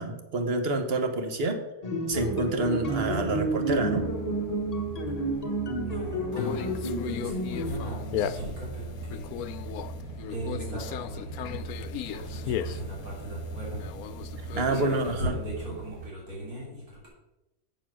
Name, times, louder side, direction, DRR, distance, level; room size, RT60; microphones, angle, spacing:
voice 1, 0.0-1.6 2.1-4.1 14.6-15.3, right 2 dB, 45° right, 6 dB, 1.3 m, -28 dB
sound 1, 1.8-7.7, right 1 dB, 30° left, 1.1 m, -30 dB
sound 2, 2.1-16.1, right 4 dB, 65° right, 1.0 m, -40 dB
voice 2, 5.8-6.8 7.0-9.4 10.3-11.7 12.1-13.8 14.5-17.1, right 1 dB, 80° right, -5 dB, 4.1 m, -38 dB
Conversation, 6.3-15.2, left 10 dB, 80° left, 1.0 m, -36 dB
7.9 x 6.8 x 6.1 m, 0.99 s
omnidirectional pair, 1.5 m